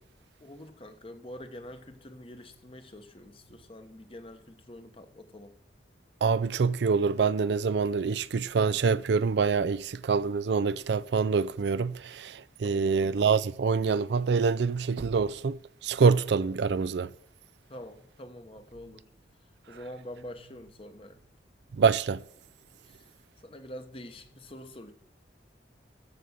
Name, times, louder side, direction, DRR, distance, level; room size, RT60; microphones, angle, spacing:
voice 1, 0.4-5.5 12.6-12.9 17.7-19.0 19.7-21.2 22.9-23.0 23.4-24.9, left 1 dB, 30° left, 1.1 m, -45 dB
voice 2, 6.2-15.6 15.8-17.1 21.8-22.2, right 5 dB, 75° right, 0.4 m, -25 dB
14.0 x 5.4 x 6.3 m
head